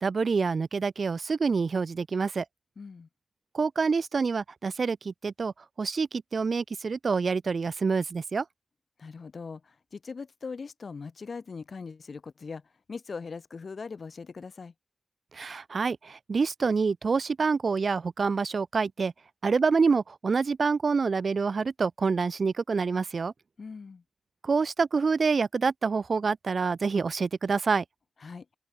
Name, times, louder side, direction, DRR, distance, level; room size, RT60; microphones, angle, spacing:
voice 1, 0.0-2.4 3.5-5.5 5.8-8.4 15.3-19.1 19.4-23.3 24.4-27.8, right 4 dB, 75° right, 0.4 m, -27 dB
voice 2, 2.8-3.1 9.0-12.6 12.9-14.7 23.6-24.0 28.2-28.5, left 5 dB, 75° left, 1.9 m, -40 dB
open air
wide cardioid pair, 90°, 0 cm